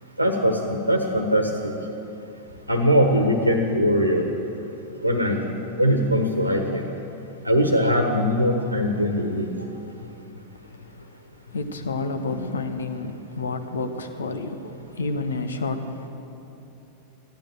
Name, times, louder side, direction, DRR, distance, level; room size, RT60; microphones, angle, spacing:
voice 1, 0.2-1.7 2.7-4.3 5.0-5.4 5.8-6.8 7.4-9.5, equal, 90° right, 4 dB, 1.4 m, -21 dB
voice 2, 11.5-16.1, left 3 dB, 70° left, 8 dB, 1.2 m, -30 dB
15.5 x 12.0 x 7.7 m, 2.9 s
figure-of-eight pair, 90°, 0 cm